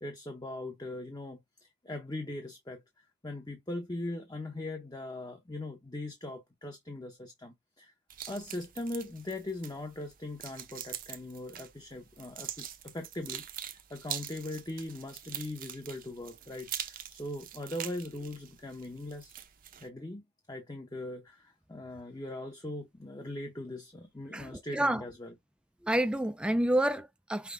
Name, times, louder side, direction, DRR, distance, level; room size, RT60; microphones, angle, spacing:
voice 1, 0.0-7.9 8.3-19.3 19.8-20.2 20.5-25.3, left 1 dB, 20° left, 0.7 m, -40 dB
sound 1, 8.1-19.9, right 10 dB, 45° right, 0.6 m, -44 dB
voice 2, 24.3-25.0 25.8-27.5, right 1 dB, 5° right, 0.3 m, -29 dB
5.8 x 2.2 x 3.7 m
head